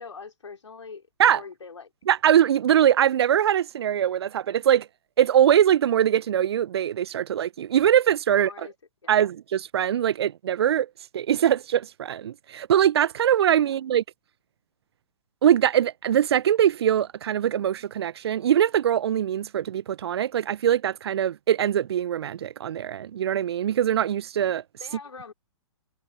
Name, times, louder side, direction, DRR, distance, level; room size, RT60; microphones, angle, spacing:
voice 1, 0.0-1.9 8.3-8.7 9.0-9.3 13.6-13.7 24.8-25.3, left 5 dB, 75° left, 4.3 m, -43 dB
voice 2, 2.1-4.9 5.2-8.5 9.1-14.0 15.4-24.6, right 10 dB, 55° right, 0.8 m, -22 dB
figure-of-eight pair, 120°, 16 cm